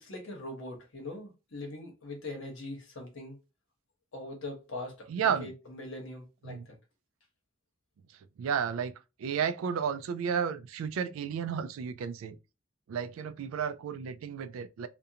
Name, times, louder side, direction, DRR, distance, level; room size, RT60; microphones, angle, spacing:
voice 1, 0.0-3.4 4.1-6.8, left 2 dB, 65° left, 0.9 m, -42 dB
voice 2, 5.1-5.5 6.5-6.7 8.4-8.9 9.2-12.4 12.9-14.9, right 7 dB, 80° right, 0.3 m, -32 dB
2.4 x 2.1 x 2.7 m
head